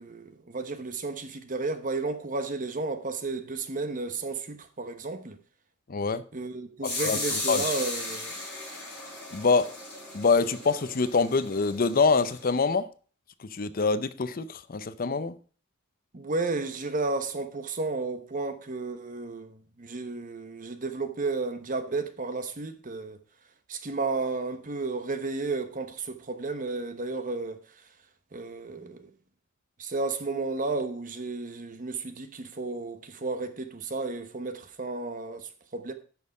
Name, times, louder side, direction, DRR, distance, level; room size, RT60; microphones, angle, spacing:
voice 1, 0.0-5.4 6.3-8.4 16.1-23.2 23.7-27.6 28.3-29.1 29.8-35.9, right 3 dB, 40° right, 1.0 m, -33 dB
voice 2, 5.9-6.2 7.0-7.7 9.3-9.7 10.1-12.9 13.5-15.3, left 4 dB, 45° left, 0.6 m, -25 dB
sound 1, 6.8-12.5, left 2 dB, 10° left, 5.2 m, -36 dB
11.0 x 6.4 x 4.9 m
head